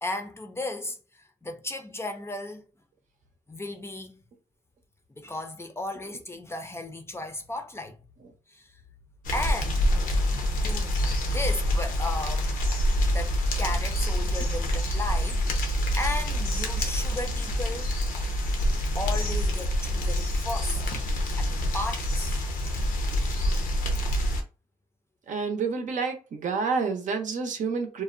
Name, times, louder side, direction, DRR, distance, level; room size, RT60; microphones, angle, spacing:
voice 1, 0.0-2.6 3.5-4.2 5.2-8.0 8.5-8.7 9.3-9.9 10.6-12.6 13.1-15.4 15.7-17.9 19.0-20.8 21.4-22.1, left 2 dB, 20° left, 0.5 m, -35 dB
sound 1, 9.2-24.4, equal, 90° left, 0.6 m, -26 dB
voice 2, 25.3-28.0, right 5 dB, 65° right, 0.6 m, -29 dB
2.5 x 2.0 x 2.5 m
cardioid pair, 80°, 14 cm